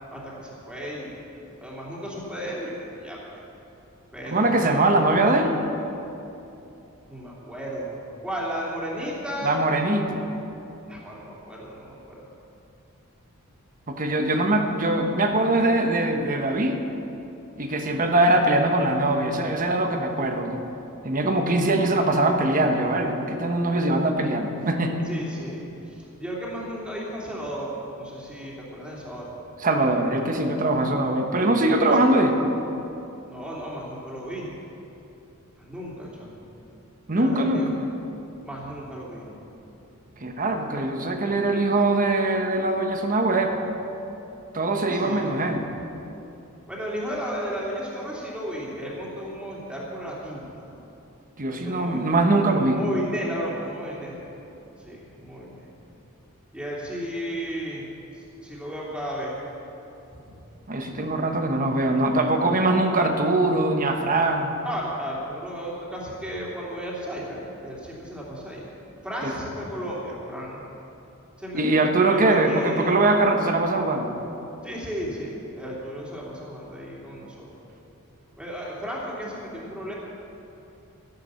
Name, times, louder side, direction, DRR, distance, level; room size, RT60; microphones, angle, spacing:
voice 1, 0.1-1.2 1.6-3.4 4.1-4.9 7.1-8.0 8.2-9.6 10.9-12.2 25.1-29.3 31.7-31.9 33.3-34.5 35.6-36.4 37.1-37.8 38.4-39.5 40.1-40.2 44.9-45.4 46.7-50.7 51.5-52.0 52.7-54.2 54.8-55.7 56.5-57.9 58.1-59.3 60.1-60.3 64.6-68.7 69.0-70.6 71.4-73.0 74.6-77.5 78.4-79.9, equal, 5° right, -6 dB, 2.9 m, -34 dB
voice 2, 4.3-5.6 9.4-10.3 13.9-16.8 17.6-20.6 21.0-25.0 29.6-32.4 37.1-37.6 40.2-43.5 44.5-45.6 51.4-52.8 60.7-64.6 69.2-69.3 71.5-74.1, right 2 dB, 40° right, 4 dB, 1.1 m, -22 dB
13.5 x 10.5 x 6.9 m, 2.9 s
head